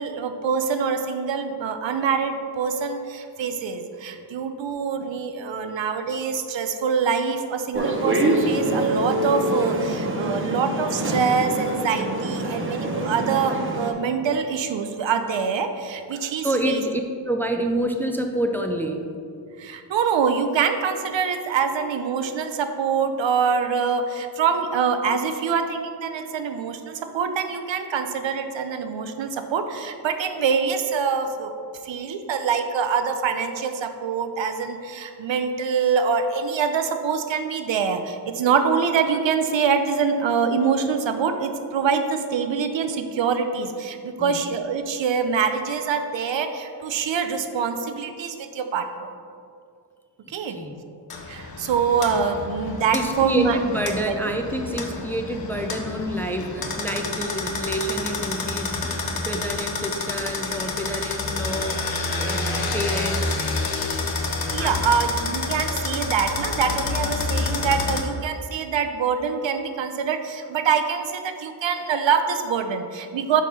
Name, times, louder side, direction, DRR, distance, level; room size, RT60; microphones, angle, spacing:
voice 1, 0.0-16.8 19.6-31.5 31.8-49.1 50.3-50.6 51.3-53.6 54.0-54.2 64.5-73.4, right 6 dB, 85° right, 8 dB, 0.7 m, -25 dB
sound 1, 7.7-13.9, right 1 dB, 30° right, 0.8 m, -25 dB
voice 2, 12.4-12.7 16.1-19.0 44.2-44.4 50.3-50.8 52.9-63.5 64.6-64.8, right 1 dB, 5° left, 3 dB, 0.3 m, -28 dB
sound 2, 51.1-68.0, left 3 dB, 55° left, 0.8 m, -29 dB
sound 3, 52.1-59.6, left 1 dB, 75° left, 1.2 m, -40 dB
5.3 x 4.8 x 5.7 m, 2.4 s
wide cardioid pair, 150°, 43 cm